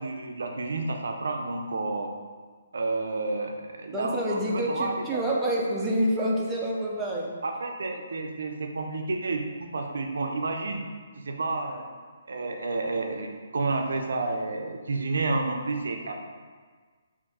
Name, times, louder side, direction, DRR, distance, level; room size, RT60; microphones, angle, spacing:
voice 1, 0.0-2.1 2.7-5.2 7.4-10.8 11.2-11.9 12.3-16.1, right 3 dB, 80° right, 3 dB, 0.4 m, -30 dB
voice 2, 3.9-7.3, equal, 10° right, -5 dB, 0.6 m, -27 dB
3.4 x 2.5 x 4.0 m, 1.5 s
hypercardioid pair, 155°, 0 cm